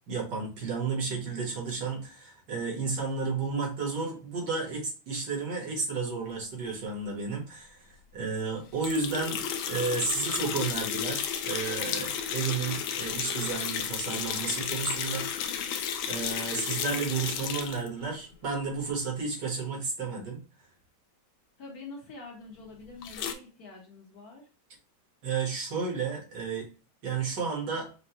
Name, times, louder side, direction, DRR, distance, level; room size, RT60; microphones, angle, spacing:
voice 1, 0.1-9.4 9.7-15.6 16.1-20.4 25.2-26.7 27.0-27.9, right 4 dB, 60° right, -1 dB, 2.0 m, -32 dB
sound 1, 8.8-17.9 23.0-23.3, left 8 dB, 85° left, 1.4 m, -33 dB
voice 2, 21.6-24.5, left 3 dB, 55° left, -1 dB, 1.6 m, -46 dB
5.3 x 2.4 x 2.9 m, 0.34 s
omnidirectional pair, 2.1 m